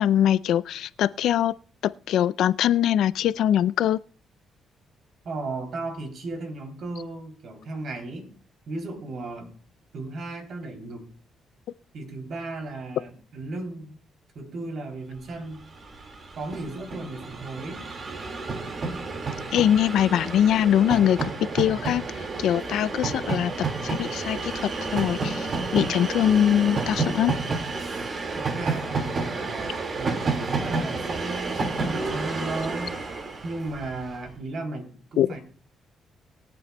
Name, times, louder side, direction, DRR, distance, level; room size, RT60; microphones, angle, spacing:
voice 1, 0.0-1.5 2.1-4.0 19.5-22.0 22.4-23.5 23.8-25.5 25.7-27.3 35.2-35.3, left 10 dB, 80° left, 0.4 m, -22 dB
voice 2, 5.2-8.3 8.7-9.5 9.9-11.1 11.9-14.0 14.3-15.6 16.3-17.9 28.3-33.0 33.4-35.4, right 2 dB, 60° right, 3.1 m, -35 dB
Train, 15.5-15.6 15.8-34.2, right 4 dB, 45° right, 2.0 m, -30 dB
21.5 x 8.5 x 2.2 m
cardioid pair, 90°, 0 cm